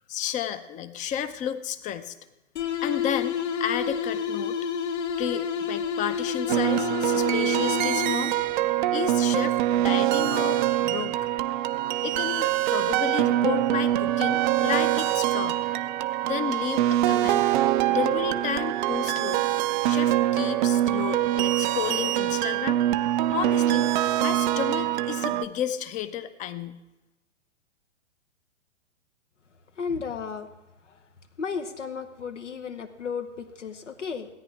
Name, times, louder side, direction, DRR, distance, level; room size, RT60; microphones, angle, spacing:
voice 1, 0.1-2.1 2.8-4.6 5.2-8.4 8.9-11.2 12.0-15.6 16.2-17.5 17.9-19.4 19.8-22.8 23.3-23.9 24.2-26.8, left 9 dB, 20° left, 12 dB, 0.6 m, -32 dB
sound 1, 2.6-8.5, left 7 dB, 65° left, 1.9 m, -29 dB
sound 2, 6.5-25.4, right 13 dB, 40° right, 0.5 m, -24 dB
voice 2, 29.8-30.5 31.4-34.3, left 5 dB, 85° left, 8 dB, 1.2 m, -33 dB
16.5 x 9.6 x 3.4 m, 1.0 s
figure-of-eight pair, 110°, 36 cm